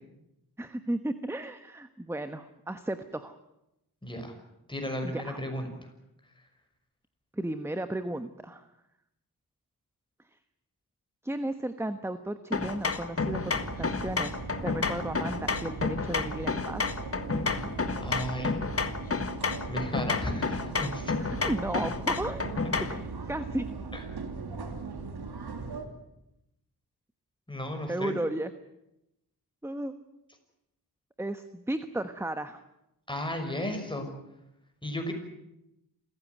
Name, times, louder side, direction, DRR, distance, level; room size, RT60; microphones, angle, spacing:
voice 1, 0.6-3.4 5.0-5.4 7.3-8.7 11.2-14.4 14.6-16.9 21.2-22.5 22.9-23.7 27.9-28.5 29.6-29.9 31.2-32.6, right 1 dB, 5° right, 10 dB, 1.2 m, -34 dB
voice 2, 4.0-4.3 4.7-5.7 18.0-18.6 19.7-21.1 23.9-24.0 27.5-28.2 33.1-34.1 34.8-35.1, left 1 dB, 10° left, 4 dB, 6.1 m, -34 dB
sound 1, 12.5-23.1, left 4 dB, 35° left, 1.6 m, -31 dB
sound 2, 13.2-25.9, right 4 dB, 75° right, 3.2 m, -39 dB
27.5 x 16.0 x 9.5 m, 0.88 s
wide cardioid pair, 90°, 39 cm